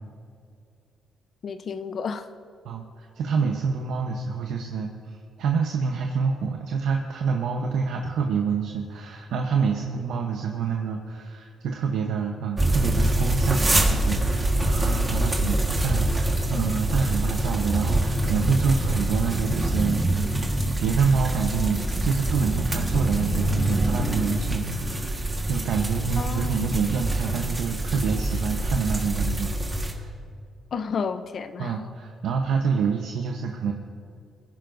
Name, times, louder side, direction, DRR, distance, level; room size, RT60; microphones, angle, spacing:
voice 1, 1.4-2.3 26.2-26.9 30.7-31.8, left 6 dB, 50° left, 10 dB, 0.6 m, -31 dB
voice 2, 2.6-20.0 20.8-30.1 31.6-33.7, right 6 dB, 80° right, 2 dB, 0.9 m, -27 dB
sound 1, 12.6-29.9, right 1 dB, 20° right, 1.5 m, -25 dB
22.5 x 11.0 x 2.6 m, 2.5 s
cardioid pair, 95°, 0 cm